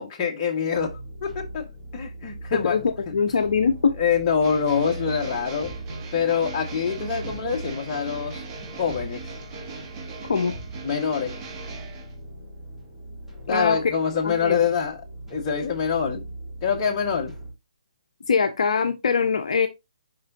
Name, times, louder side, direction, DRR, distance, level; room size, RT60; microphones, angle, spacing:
voice 1, 0.0-1.7 1.9-2.8 3.0-3.1 4.0-5.7 6.1-8.4 8.8-9.3 10.8-11.4 13.5-15.0 15.3-16.2 16.6-17.3, left 6 dB, 30° left, 1.6 m, -25 dB
sound 1, 0.7-17.5, right 1 dB, 5° right, 2.8 m, -40 dB
voice 2, 2.5-3.9 10.3-10.5 13.5-13.8 14.2-14.5 18.3-19.7, left 5 dB, 65° left, 0.8 m, -22 dB
sound 2, 4.4-12.1, right 4 dB, 25° right, 1.7 m, -38 dB
6.6 x 5.2 x 2.8 m
figure-of-eight pair, 145°, 4 cm